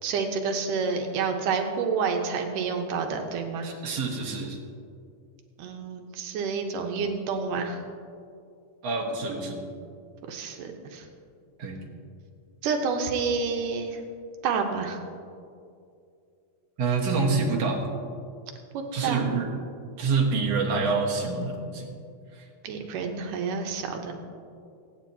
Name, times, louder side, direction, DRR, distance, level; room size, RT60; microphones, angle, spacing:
voice 1, 0.0-3.7 5.6-7.8 10.3-11.1 12.6-14.0 14.4-15.0 18.7-19.2 22.6-24.2, right 5 dB, 85° right, 3 dB, 2.6 m, -29 dB
voice 2, 3.6-4.6 8.8-9.6 11.6-11.8 16.8-17.8 18.9-19.5 20.0-21.9 22.3-22.4, right 4 dB, 55° right, -2 dB, 2.5 m, -27 dB
25.5 x 9.4 x 3.0 m, 2.4 s
omnidirectional pair, 3.7 m